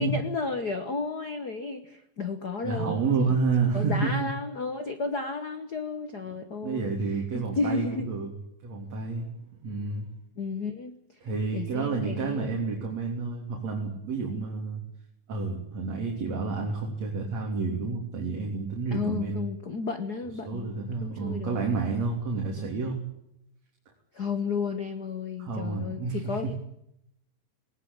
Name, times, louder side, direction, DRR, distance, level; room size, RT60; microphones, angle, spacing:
voice 1, 0.0-3.0 3.7-6.9 7.3-8.1 10.4-11.0 11.5-12.7 18.9-20.7 21.0-21.6 22.6-22.7 24.1-26.5, left 4 dB, 65° left, 9 dB, 1.0 m, -32 dB
voice 2, 2.6-4.3 6.6-8.3 8.6-9.3 9.6-10.1 11.2-14.8 15.3-19.5 20.5-23.0 25.4-26.5, right 4 dB, 50° right, 0 dB, 4.5 m, -29 dB
19.0 x 19.0 x 8.9 m, 0.80 s
omnidirectional pair, 4.0 m